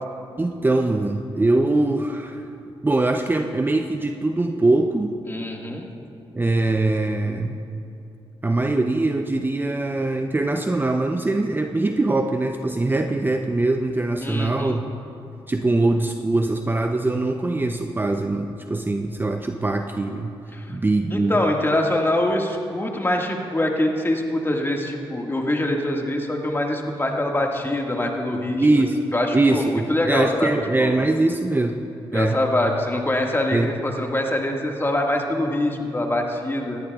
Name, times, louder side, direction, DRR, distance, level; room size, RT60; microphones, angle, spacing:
voice 1, 0.4-2.4 2.8-5.1 6.3-7.6 8.4-14.8 15.5-20.3 20.7-21.3 28.6-29.0 29.3-31.9 32.1-32.4 33.5-33.7, right 2 dB, 20° right, 5 dB, 0.6 m, -22 dB
voice 2, 5.3-5.9 14.2-14.8 20.5-20.8 21.1-28.7 29.1-30.5 30.8-30.9 32.1-36.8, left 1 dB, 20° left, 1 dB, 1.8 m, -24 dB
18.0 x 14.0 x 2.4 m, 2.7 s
supercardioid pair, 55°, 10 cm